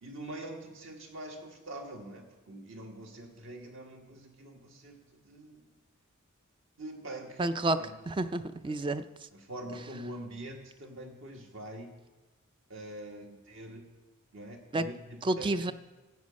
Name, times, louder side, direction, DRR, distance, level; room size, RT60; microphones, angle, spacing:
voice 1, 0.0-5.7 6.8-7.4 7.8-8.0 8.7-8.8 9.3-11.9 12.7-13.9 14.3-15.7, right 1 dB, 60° right, 2 dB, 1.8 m, -44 dB
voice 2, 7.4-7.8 8.1-9.0 14.7-14.8 15.2-15.7, right 2 dB, 25° right, 11 dB, 0.3 m, -29 dB
14.5 x 8.4 x 5.2 m, 1.1 s
head